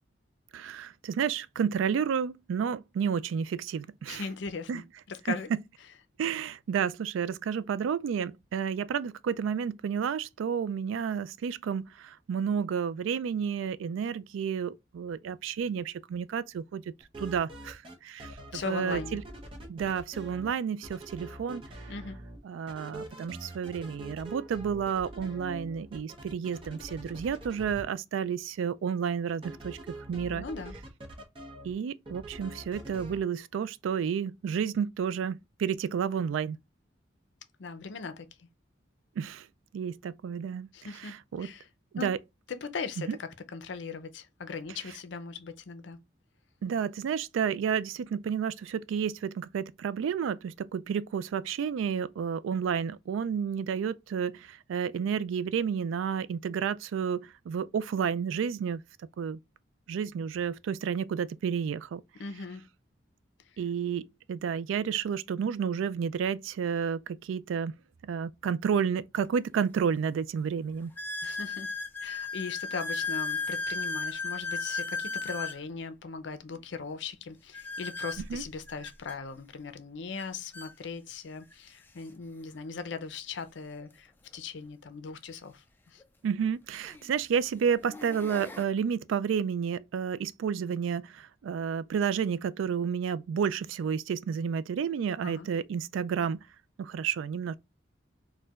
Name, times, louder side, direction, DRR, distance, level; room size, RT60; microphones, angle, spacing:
voice 1, 0.5-4.2 4.7-4.8 6.2-16.8 17.2-18.3 18.7-19.2 19.7-21.6 22.4-29.8 30.1-30.5 31.6-36.6 39.2-39.4 39.7-40.7 41.3-41.5 42.0-42.2 43.1-43.2 46.6-58.8 59.2-59.4 59.9-62.0 63.6-67.7 68.1-70.9 78.3-78.4 86.2-96.4 96.8-97.5, right 7 dB, 85° right, 0.3 m, -31 dB
voice 2, 4.1-5.5 18.5-19.2 21.9-22.2 30.3-30.8 37.6-38.5 40.7-41.7 42.0-42.1 42.5-46.0 62.2-62.7 63.5-63.6 71.2-71.7 72.0-86.0 95.2-95.5, left 5 dB, 70° left, 0.5 m, -39 dB
sound 1, 17.0-17.9 18.2-20.5 20.8-22.4 22.7-27.8 29.4-31.7 32.1-33.2, right 1 dB, 25° right, 0.8 m, -44 dB
sound 2, 69.2-69.3 70.0-70.1 71.0-75.6 77.5-79.2 80.2-80.3 80.5-80.7 81.5-81.6 83.8-83.9 86.0-86.1 86.8-87.1 87.7-88.6, left 4 dB, 10° left, 0.3 m, -35 dB
4.3 x 2.2 x 2.3 m
head